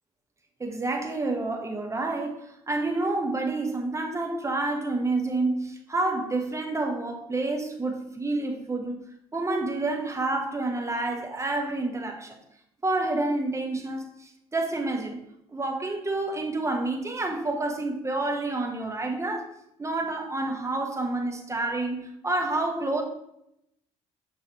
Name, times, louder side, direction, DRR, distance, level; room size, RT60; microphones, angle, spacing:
voice 1, 0.6-9.0 9.3-12.4 12.8-15.2 15.5-19.5 19.8-23.0, right 2 dB, 15° right, 0.8 m, -29 dB
5.6 x 3.2 x 2.9 m
hypercardioid pair, 55°, 18 cm